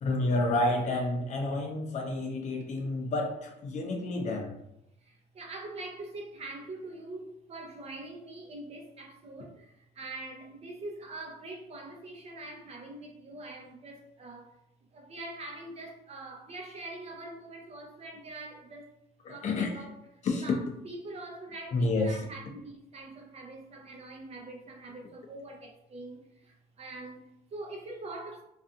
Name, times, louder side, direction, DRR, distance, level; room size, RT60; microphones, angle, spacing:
voice 1, 0.0-4.5 19.2-19.8 20.2-20.5 21.7-22.2, left 2 dB, 45° left, 0.5 m, -29 dB
voice 2, 5.0-14.5 14.9-18.9 19.3-20.0 20.4-28.4, right 2 dB, 40° right, 0.6 m, -44 dB
2.5 x 2.3 x 2.6 m
cardioid pair, 110°, 17 cm